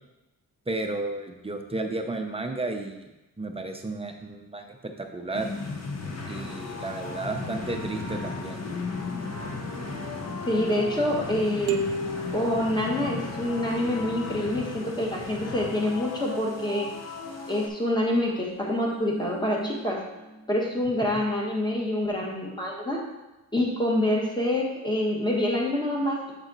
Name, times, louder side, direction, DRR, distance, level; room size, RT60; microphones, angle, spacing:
voice 1, 0.7-3.1 3.4-5.5 6.2-8.6 21.0-21.2, right 2 dB, 15° right, 4 dB, 0.6 m, -33 dB
sound 1, 5.3-17.7, left 3 dB, 40° left, 0.8 m, -35 dB
voice 2, 10.5-11.8 12.3-16.9 17.5-20.0 20.5-23.0 23.5-26.3, left 1 dB, 10° left, -2 dB, 1.3 m, -26 dB
sound 2, 11.7-13.6, equal, 65° right, 0.6 m, -33 dB
sound 3, 18.2-20.9 21.2-21.3, right 1 dB, 65° left, 1.5 m, -42 dB
7.4 x 4.1 x 3.9 m, 1.0 s
wide cardioid pair, 115°, 38 cm